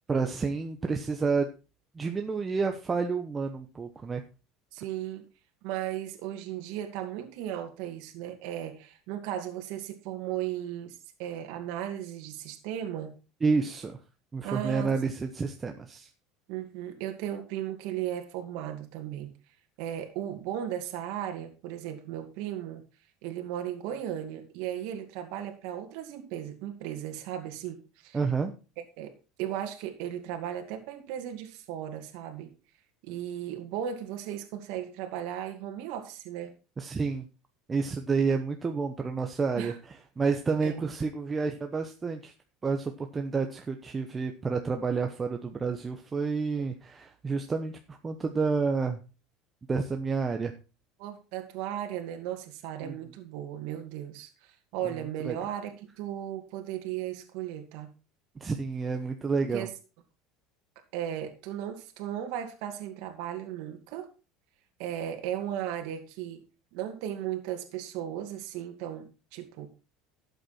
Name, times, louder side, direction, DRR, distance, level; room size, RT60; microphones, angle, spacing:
voice 1, 0.1-1.5 1.9-4.2 13.4-14.0 14.3-16.1 28.1-28.5 36.8-37.3 37.7-39.7 40.2-42.3 42.6-49.0 49.7-50.5 52.8-52.9 54.8-54.9 55.2-55.4 58.4-59.7, right 4 dB, 20° right, 5 dB, 1.0 m, -29 dB
voice 2, 4.7-5.2 5.6-13.1 14.4-14.9 16.5-19.3 19.8-22.8 23.2-28.2 29.0-29.1 29.4-32.5 33.0-36.5 39.6-39.8 40.6-40.9 51.0-57.9 59.5-59.7 60.9-64.1 64.8-66.4 66.7-69.7, right 11 dB, 70° right, 4 dB, 2.2 m, -36 dB
13.0 x 8.1 x 4.4 m, 0.31 s
cardioid pair, 140°, 0 cm